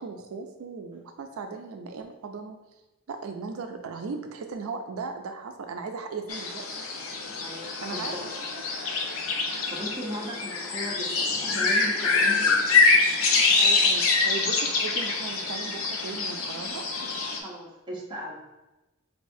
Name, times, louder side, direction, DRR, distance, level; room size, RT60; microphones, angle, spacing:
voice 1, 0.0-2.6 3.1-6.7 7.8-8.3 13.6-16.8, right 4 dB, 90° right, 5 dB, 0.4 m, -37 dB
sound 1, 6.3-17.4, left 4 dB, 70° left, 0.6 m, -25 dB
voice 2, 7.4-8.2 9.2-12.7 17.4-18.4, equal, 20° right, -4 dB, 0.9 m, -38 dB
4.4 x 3.3 x 2.6 m, 1.0 s
head